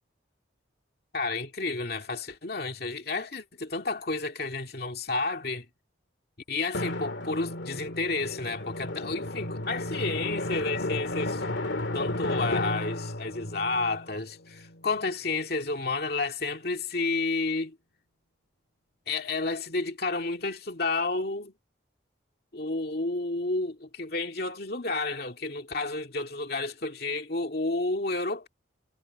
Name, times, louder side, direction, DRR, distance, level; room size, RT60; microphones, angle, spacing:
voice 1, 1.1-5.7 6.5-11.4 11.9-17.8 19.1-21.5 22.5-28.5, left 3 dB, 55° left, 2.3 m, -31 dB
Drum, 6.7-15.0, left 1 dB, 75° left, 2.2 m, -33 dB
head